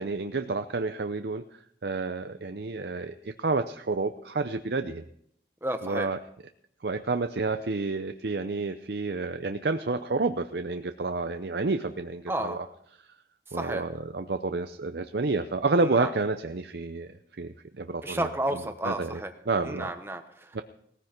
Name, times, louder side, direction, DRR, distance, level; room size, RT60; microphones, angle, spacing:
voice 1, 0.0-1.4 1.8-5.0 5.8-6.2 6.8-12.6 13.5-18.3 18.8-19.9 20.5-20.6, right 3 dB, 70° right, 8 dB, 0.7 m, -30 dB
voice 2, 5.6-6.1 12.3-12.6 13.5-13.9 15.8-16.1 18.0-19.3 19.6-20.6, right 1 dB, 15° right, 6 dB, 1.0 m, -32 dB
18.5 x 14.5 x 4.5 m, 0.70 s
head